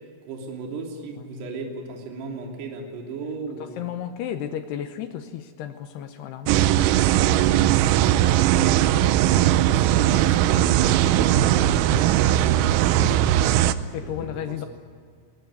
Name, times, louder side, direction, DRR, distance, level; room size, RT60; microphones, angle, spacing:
voice 1, 0.2-3.8 7.0-7.5 8.3-13.5 14.0-14.7, right 3 dB, 60° right, 0 dB, 4.9 m, -36 dB
voice 2, 3.6-6.7 13.0-13.2 13.9-14.7, left 10 dB, 80° left, 8 dB, 2.5 m, -33 dB
sound 1, 6.5-13.7, right 12 dB, 90° right, 3.4 m, -19 dB
21.0 x 20.5 x 9.4 m, 2.2 s
omnidirectional pair, 5.8 m